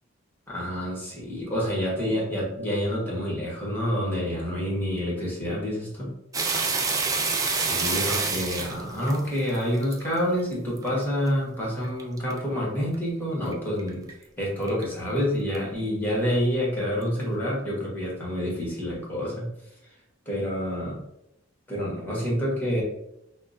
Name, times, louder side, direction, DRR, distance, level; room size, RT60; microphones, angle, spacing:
voice 1, 0.5-6.1 7.5-14.0 14.4-19.5 20.3-21.0 21.7-22.8, equal, 10° left, -4 dB, 1.2 m, -28 dB
sound 1, 6.3-10.0 10.5-10.9 11.3-11.4 11.8-12.4 12.9-13.0 13.5-13.6 13.8-14.1 14.7-14.8 15.5-15.6, right 4 dB, 15° right, 0.4 m, -27 dB
5.4 x 2.1 x 2.5 m, 0.83 s
head